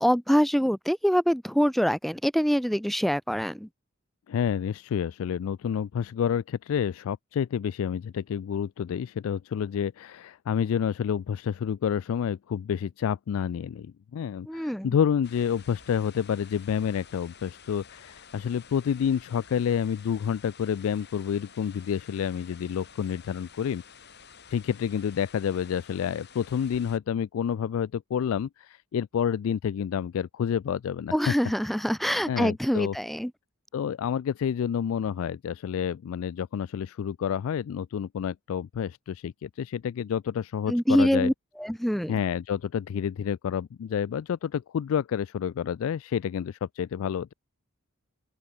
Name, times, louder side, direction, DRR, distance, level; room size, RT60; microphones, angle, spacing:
voice 1, 0.0-3.7 14.5-14.9 31.1-33.3 40.7-41.3 41.6-42.1, equal, ahead, 0.6 m, -24 dB
voice 2, 4.3-23.8 24.5-31.3 32.3-33.0 33.7-41.3 42.1-47.3, left 8 dB, 70° left, 0.3 m, -29 dB
sound 1, 15.2-27.0, left 6 dB, 50° left, 5.5 m, -51 dB
open air
head